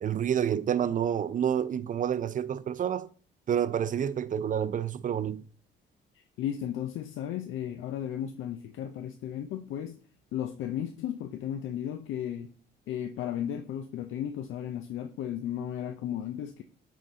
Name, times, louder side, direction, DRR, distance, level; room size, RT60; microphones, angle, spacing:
voice 1, 0.0-3.1 3.5-5.4, right 9 dB, 40° right, 0.5 m, -28 dB
voice 2, 6.1-10.0 10.3-12.5 12.9-16.6, left 10 dB, 80° left, 0.5 m, -35 dB
9.2 x 3.8 x 3.9 m
cardioid pair, 90°, 20 cm